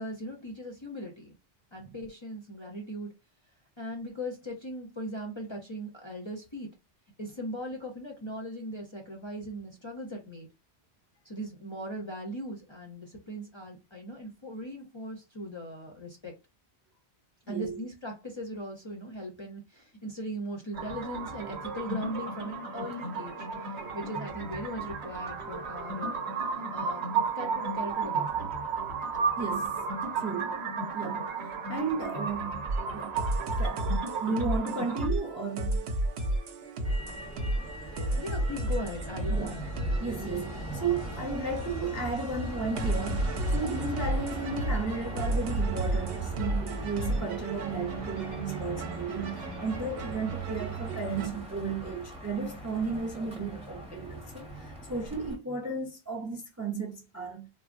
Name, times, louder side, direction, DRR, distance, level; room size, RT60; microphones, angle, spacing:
voice 1, 0.0-1.3 1.7-3.1 3.8-6.7 7.2-10.5 11.2-16.3 17.5-23.5 23.8-27.0 27.3-28.5 38.2-39.6, equal, 35° left, 0.5 m, -39 dB
voice 2, 17.5-17.8 29.4-30.6 30.9-32.6 32.9-33.2 33.6-35.9 37.0-37.2 39.3-39.5 40.0-57.5, right 4 dB, 25° right, 0.4 m, -34 dB
sound 1, 20.7-35.1, right 5 dB, 85° right, 1.0 m, -33 dB
sound 2, 32.7-51.3, right 1 dB, 70° right, 0.8 m, -33 dB
Motor vehicle (road), 36.8-55.3, right 1 dB, 5° right, 0.8 m, -39 dB
3.4 x 2.1 x 2.4 m
omnidirectional pair, 1.1 m